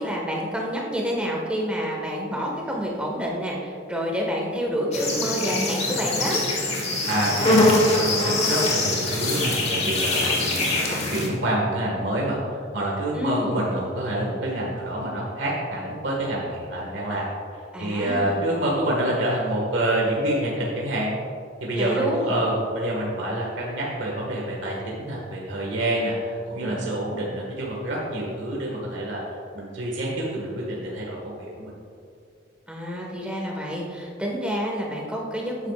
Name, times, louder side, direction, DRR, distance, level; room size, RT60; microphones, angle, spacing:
voice 1, 0.0-6.4 13.1-13.5 17.7-18.4 21.7-22.3 26.6-26.8 32.7-35.7, equal, 5° right, -2 dB, 1.6 m, -28 dB
sound 1, 4.9-11.3, left 2 dB, 35° left, 1.5 m, -23 dB
voice 2, 7.0-21.1 21.6-31.8, right 1 dB, 65° right, -4 dB, 1.8 m, -27 dB
13.0 x 10.0 x 2.5 m, 2.5 s
head